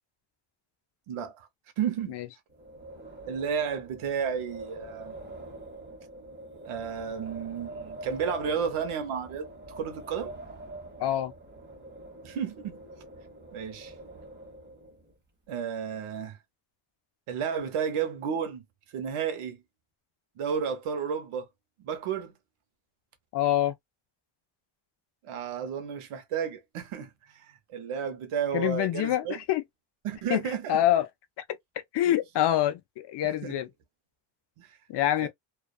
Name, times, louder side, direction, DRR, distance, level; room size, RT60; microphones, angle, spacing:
voice 1, 1.1-1.5 1.8-2.1 3.3-5.1 6.6-10.3 12.2-12.8 13.5-13.9 15.5-16.4 17.3-18.6 18.9-19.6 20.4-21.5 21.8-22.3 25.2-29.4 30.0-30.8 32.0-32.1 33.2-33.6 34.6-34.8 35.2-35.3, right 7 dB, 90° right, 0.9 m, -32 dB
Wind, 2.5-15.1, right 2 dB, 20° right, 0.9 m, -45 dB
voice 2, 11.0-11.3 23.3-23.7 28.5-29.6 30.3-30.4 30.7-31.1 31.5-33.7 34.9-35.3, left 12 dB, 60° left, 0.5 m, -26 dB
2.4 x 2.3 x 2.3 m
cardioid pair, 125°, 49 cm